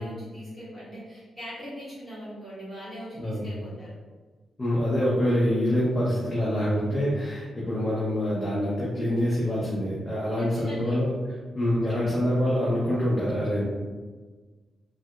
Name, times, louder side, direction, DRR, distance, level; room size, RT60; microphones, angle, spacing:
voice 1, 0.0-4.0 10.4-11.0, equal, 15° right, -10 dB, 1.4 m, -40 dB
voice 2, 4.6-11.1 11.5-13.6, equal, 20° left, -8 dB, 0.6 m, -25 dB
3.3 x 2.7 x 2.3 m, 1.4 s
wide cardioid pair, 170°, 0 cm